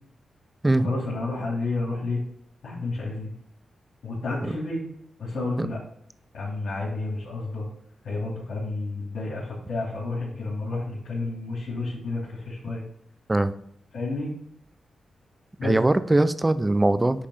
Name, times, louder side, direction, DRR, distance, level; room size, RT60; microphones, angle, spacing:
voice 1, 0.7-2.2 2.6-3.3 4.0-4.8 5.2-5.8 6.3-7.7 8.0-12.8 13.9-14.3 15.6-15.8, left 2 dB, 75° left, -8 dB, 3.5 m, -30 dB
voice 2, 15.6-17.3, right 2 dB, 20° right, 12 dB, 0.6 m, -21 dB
10.0 x 3.4 x 5.6 m, 0.70 s
cardioid pair, 70°, 0 cm